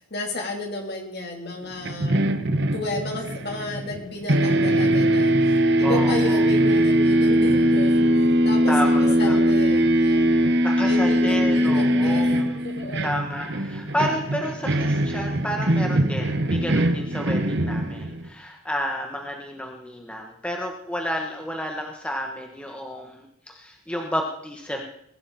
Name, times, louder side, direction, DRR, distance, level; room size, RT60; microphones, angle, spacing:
voice 1, 0.0-2.2 2.7-8.1 8.4-8.7 9.2-10.3 10.8-13.2, left 2 dB, 50° left, 1 dB, 3.3 m, -32 dB
sound 1, 1.8-4.0 4.3-18.3, right 1 dB, 50° right, 1.1 m, -21 dB
voice 2, 5.8-6.5 8.7-9.4 10.6-12.5 13.0-24.8, equal, 5° left, 1 dB, 1.3 m, -31 dB
21.0 x 12.0 x 4.2 m, 0.73 s
head